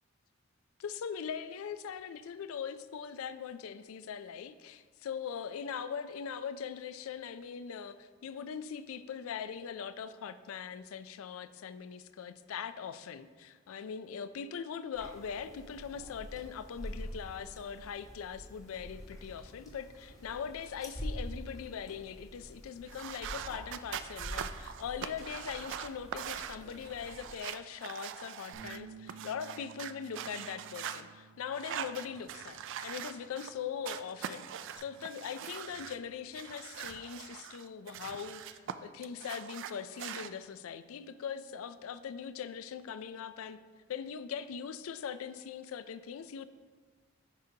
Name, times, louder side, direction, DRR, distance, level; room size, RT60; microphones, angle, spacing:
voice 1, 0.8-43.6 43.9-46.5, left 7 dB, 80° left, 13 dB, 0.4 m, -41 dB
sound 1, 14.9-27.4, equal, 15° left, 1.0 m, -46 dB
sound 2, 22.9-28.8 29.1-31.0 31.5-33.5 33.8-36.0 36.3-38.7 39.0-40.3, right 9 dB, 60° right, 0.3 m, -42 dB
Bass guitar, 28.5-34.8, right 5 dB, 85° right, 0.9 m, -55 dB
10.0 x 5.2 x 2.8 m, 1.4 s
head